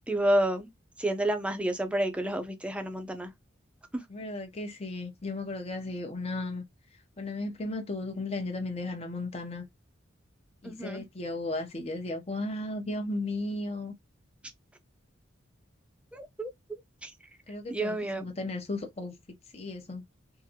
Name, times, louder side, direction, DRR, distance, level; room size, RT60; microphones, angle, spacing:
voice 1, 0.1-0.7 1.0-3.3 3.9-4.0 10.6-11.0 16.1-17.1 17.7-18.3, right 1 dB, 5° right, 0.6 m, -30 dB
voice 2, 4.1-6.6 7.2-9.7 10.6-13.9 17.5-19.1 19.5-20.0, left 2 dB, 30° left, 0.7 m, -35 dB
3.6 x 2.6 x 2.8 m
head